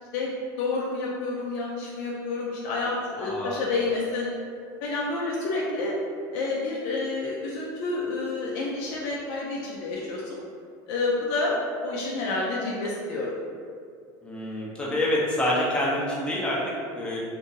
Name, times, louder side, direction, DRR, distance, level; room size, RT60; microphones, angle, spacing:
voice 1, 0.6-4.3 4.8-6.0 6.3-10.4 10.9-13.3, left 3 dB, 65° left, -4 dB, 0.5 m, -29 dB
voice 2, 3.2-3.6 14.2-17.2, left 1 dB, 10° left, -6 dB, 0.6 m, -27 dB
2.7 x 2.5 x 3.8 m, 2.3 s
supercardioid pair, 150°, 10 cm